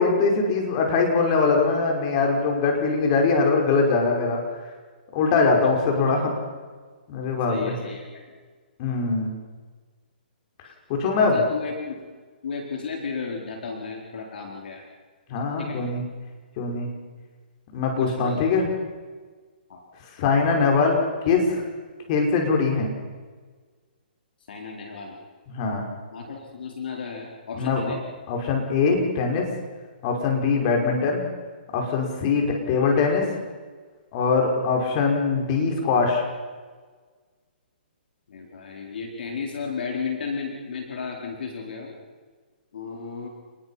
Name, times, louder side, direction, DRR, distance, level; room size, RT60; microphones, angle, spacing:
voice 1, 0.0-4.4 5.1-6.3 7.1-7.8 8.8-9.3 10.9-11.4 15.3-16.0 16.6-16.9 17.7-18.7 20.2-21.0 21.2-21.6 22.1-22.9 25.5-25.8 27.5-27.9 28.3-29.5 30.0-31.3 31.7-33.3 34.1-36.2, left 4 dB, 40° left, 1 dB, 5.7 m, -22 dB
voice 2, 7.5-8.3 11.3-12.0 12.4-14.8 15.6-15.8 18.0-18.4 19.7-19.8 24.5-25.2 26.1-28.0 38.3-42.0 42.7-43.3, left 5 dB, 65° left, 1 dB, 4.3 m, -33 dB
29.0 x 20.5 x 5.9 m, 1.5 s
hypercardioid pair, 140°, 6 cm